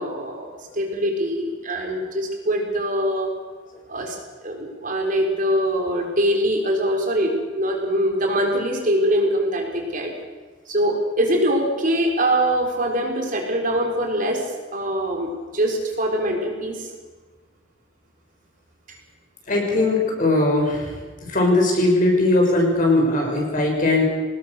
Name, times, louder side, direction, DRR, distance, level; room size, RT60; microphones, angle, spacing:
voice 1, 0.0-3.3 3.9-10.1 10.7-16.9, right 1 dB, 45° right, 2 dB, 4.6 m, -23 dB
voice 2, 19.5-20.9 21.3-24.0, left 2 dB, 45° left, 0 dB, 6.5 m, -19 dB
24.5 x 19.5 x 6.8 m, 1.3 s
head